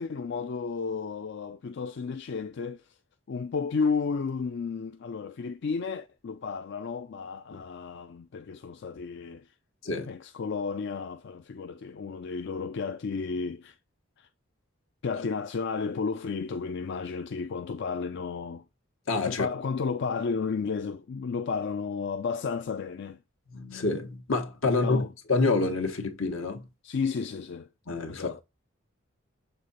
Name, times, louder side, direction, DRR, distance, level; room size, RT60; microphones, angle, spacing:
voice 1, 0.0-3.0 3.3-9.5 10.1-13.8 14.2-14.3 15.0-18.6 19.3-23.2 24.8-25.1 26.8-27.7 28.1-28.4, left 5 dB, 60° left, 0.4 m, -32 dB
voice 2, 19.1-19.5 23.5-26.7 27.9-28.3, left 3 dB, 80° left, 1.3 m, -28 dB
6.7 x 3.7 x 4.0 m
head